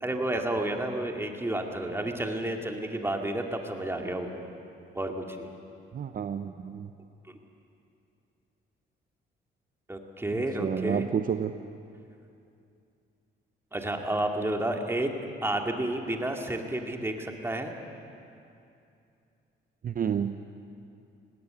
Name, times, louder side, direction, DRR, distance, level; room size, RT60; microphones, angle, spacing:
voice 1, 0.0-4.3 4.9-5.5 9.9-11.0 13.7-15.1 15.4-17.7, right 1 dB, 10° right, 3 dB, 2.3 m, -31 dB
voice 2, 5.9-6.9 10.3-11.5 19.8-20.4, right 8 dB, 45° right, 9 dB, 0.7 m, -30 dB
19.0 x 17.5 x 8.8 m, 2.6 s
cardioid pair, 90°, 20 cm